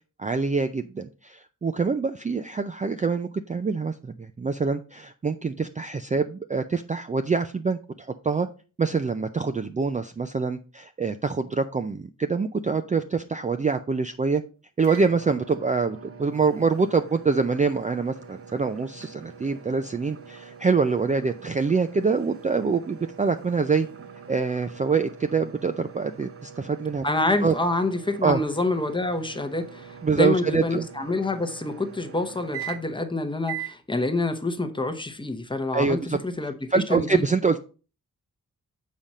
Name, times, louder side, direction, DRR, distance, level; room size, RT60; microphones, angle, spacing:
voice 1, 0.2-8.5 8.8-14.4 14.8-23.9 24.3-27.0 27.4-27.5 28.2-28.4 30.0-30.9 35.7-36.2 36.7-37.6, right 4 dB, 25° right, 0.4 m, -25 dB
sound 1, 14.8-33.1 33.4-33.8, right 8 dB, 45° right, 0.8 m, -43 dB
voice 2, 27.0-37.2, left 2 dB, 15° left, 0.8 m, -27 dB
7.4 x 5.1 x 4.1 m
wide cardioid pair, 135°, 33 cm